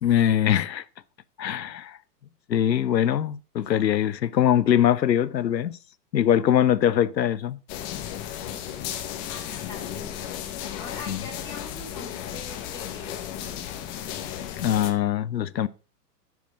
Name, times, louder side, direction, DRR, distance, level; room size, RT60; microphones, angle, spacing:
voice 1, 0.0-0.8 1.4-2.0 2.5-5.8 6.1-7.6 11.1-11.2 14.4-15.7, left 10 dB, 85° left, 0.7 m, -22 dB
sound 1, 7.7-14.9, left 11 dB, 30° left, 1.1 m, -34 dB
voice 2, 9.3-10.4 10.7-13.6, left 3 dB, 10° left, 2.9 m, -42 dB
10.5 x 4.8 x 4.9 m
figure-of-eight pair, 110°, 49 cm